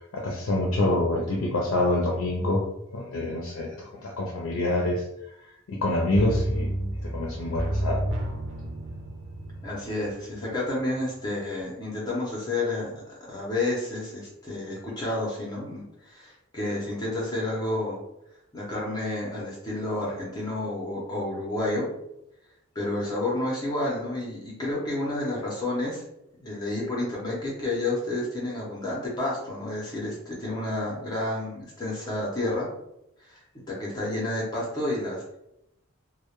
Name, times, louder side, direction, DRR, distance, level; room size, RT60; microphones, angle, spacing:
voice 1, 0.1-2.6 2.9-5.0 5.7-6.7 7.1-8.0, left 1 dB, 70° left, -2 dB, 0.4 m, -26 dB
sound 1, 6.1-10.8 11.2-11.3, right 1 dB, 60° right, 0.4 m, -31 dB
voice 2, 9.6-13.0 13.3-18.0 18.5-21.9 22.7-26.0 26.4-32.7 33.2-33.4 33.7-35.4, left 2 dB, 20° left, -5 dB, 0.6 m, -30 dB
2.1 x 2.0 x 2.9 m, 0.83 s
head